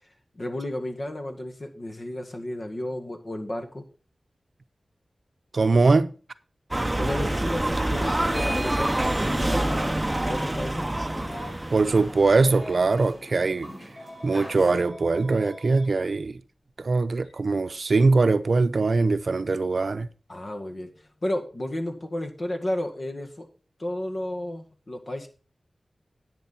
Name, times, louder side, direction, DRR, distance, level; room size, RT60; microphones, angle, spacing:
voice 1, 0.4-3.8 7.0-10.9 20.3-20.9 21.2-23.5 23.8-25.3, left 1 dB, 45° left, 1.8 m, -32 dB
voice 2, 5.5-6.1 11.7-13.7 14.2-16.4 16.8-20.1, right 3 dB, 65° right, 0.6 m, -22 dB
sound 1, 6.7-12.8, right 1 dB, 20° right, 0.7 m, -27 dB
sound 2, 8.3-14.8, equal, 5° left, 4.4 m, -41 dB
Telephone, 11.2-13.1 14.0-15.9 17.2-17.4 18.9-19.1, left 1 dB, 85° left, 6.7 m, -44 dB
10.5 x 8.4 x 4.3 m
wide cardioid pair, 85°, 0 cm